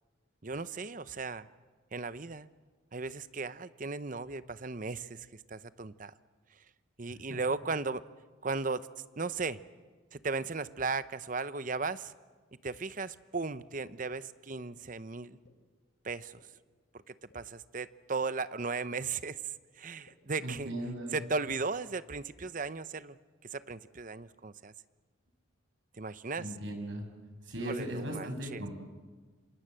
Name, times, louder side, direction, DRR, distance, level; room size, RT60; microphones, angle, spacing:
voice 1, 0.4-1.5 1.9-2.5 2.9-6.1 7.0-8.0 8.4-8.9 9.2-9.6 10.1-12.1 12.6-15.4 16.0-16.4 17.1-19.4 19.8-20.7 21.1-23.2 23.5-24.7 26.0-26.5 27.7-28.6, right 4 dB, 40° right, 14 dB, 0.8 m, -36 dB
sound 1, 13.6-13.7 14.5-14.6 15.4-15.5 16.4-16.5 17.3-17.4 18.2-18.3 19.1-19.2 20.1-20.2 21.0-21.1 21.9-22.0, left 2 dB, 60° left, 3.5 m, -60 dB
voice 2, 20.4-21.2 26.4-27.0 27.4-28.7, right 1 dB, 65° right, 5 dB, 6.1 m, -37 dB
28.0 x 26.5 x 7.7 m, 1.4 s
head